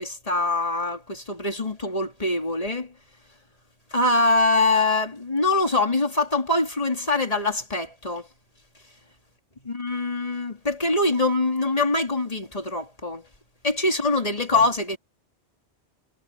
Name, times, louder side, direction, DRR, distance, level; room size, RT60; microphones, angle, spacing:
voice 1, 0.0-2.9 3.9-8.3 9.6-13.2 13.6-15.0, left 2 dB, 35° left, 3.0 m, -24 dB
omnidirectional pair, 1.1 m